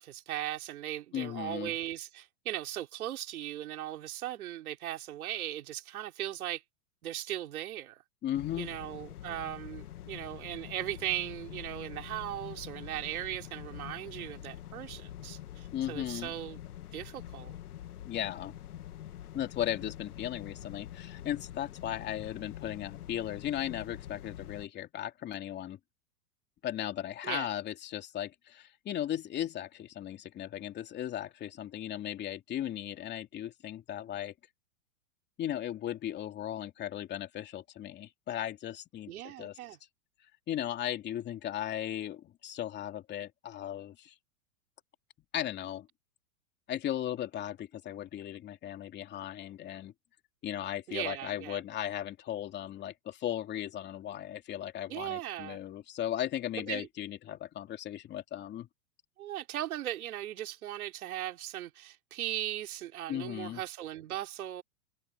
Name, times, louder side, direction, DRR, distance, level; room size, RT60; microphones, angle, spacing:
voice 1, 0.0-6.6 7.0-8.0 8.6-16.6 16.9-17.5 27.2-27.5 39.1-39.8 50.9-51.6 54.9-55.6 56.5-56.9 59.2-64.6, right 13 dB, 75° right, 3.7 m, -38 dB
voice 2, 1.1-1.7 8.2-8.7 15.7-16.3 18.0-18.5 19.3-25.8 26.6-34.3 35.4-39.6 40.5-44.1 45.3-45.9 46.7-49.9 50.4-58.7 63.1-63.6, left 11 dB, 25° left, 2.9 m, -37 dB
sound 1, 8.3-24.7, left 11 dB, 90° left, 2.0 m, -45 dB
supercardioid pair, 150°, 43 cm